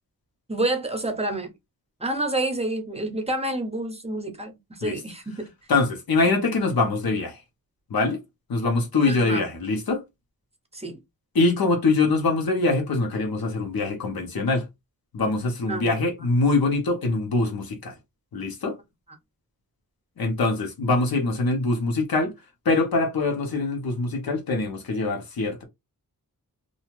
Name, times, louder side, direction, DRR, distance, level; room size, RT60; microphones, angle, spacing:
voice 1, 0.5-1.5 2.0-5.5 9.1-9.4 10.7-11.0 15.7-15.9, right 2 dB, 20° right, 0.7 m, -28 dB
voice 2, 5.7-7.4 7.9-8.2 8.5-10.0 11.3-14.6 15.1-17.9 18.3-18.8 20.2-22.3 22.6-25.6, left 3 dB, 85° left, 1.0 m, -23 dB
2.7 x 2.3 x 2.9 m
wide cardioid pair, 110°, 35 cm